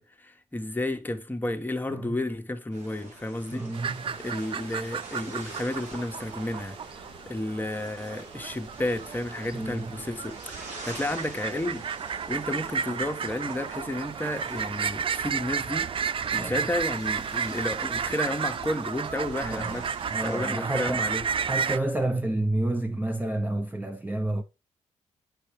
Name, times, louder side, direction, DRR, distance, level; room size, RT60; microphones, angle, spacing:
voice 1, 0.0-3.6 4.2-6.8 7.3-11.9 12.3-15.9 16.3-19.9 20.2-21.2, left 1 dB, 15° left, 1.2 m, -32 dB
sound 1, 2.7-20.5, right 2 dB, 85° right, 3.0 m, -46 dB
voice 2, 3.5-4.1 9.5-9.9 16.4-16.7 19.4-19.8 20.1-21.1 21.5-24.4, right 1 dB, 15° right, 0.7 m, -30 dB
sound 2, 3.7-21.8, right 7 dB, 50° right, 0.4 m, -32 dB
8.2 x 5.9 x 3.2 m
cardioid pair, 75°, 12 cm